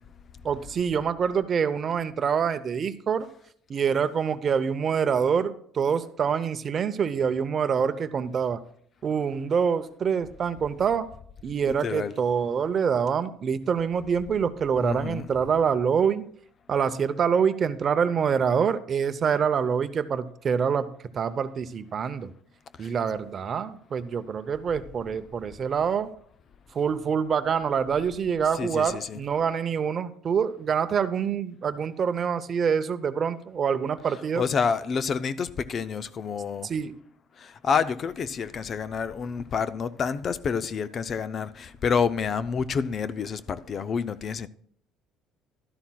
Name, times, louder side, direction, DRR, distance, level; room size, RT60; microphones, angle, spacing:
voice 1, 0.4-3.3 3.7-8.6 9.0-11.1 11.4-16.2 16.7-20.9 21.1-22.3 22.8-26.1 26.7-34.4 36.6-36.9, right 7 dB, 35° right, 0.7 m, -26 dB
voice 2, 11.8-12.1 14.8-15.3 22.8-22.9 28.5-29.2 34.4-36.7 37.4-44.5, left 6 dB, 35° left, 0.4 m, -28 dB
12.0 x 11.5 x 2.3 m
cardioid pair, 140°, 0 cm